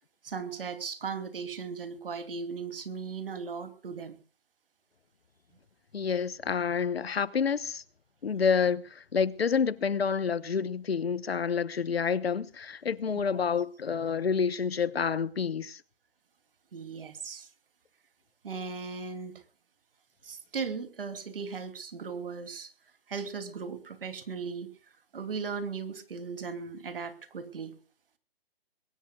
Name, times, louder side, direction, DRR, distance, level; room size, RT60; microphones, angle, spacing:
voice 1, 0.2-4.2 16.7-17.5 18.4-19.4 20.2-22.7 23.1-24.7 25.1-27.8, right 5 dB, 60° right, 2.9 m, -37 dB
voice 2, 5.9-7.8 8.2-15.8, left 6 dB, 70° left, 1.1 m, -28 dB
22.0 x 19.5 x 2.4 m
figure-of-eight pair, 140°, 31 cm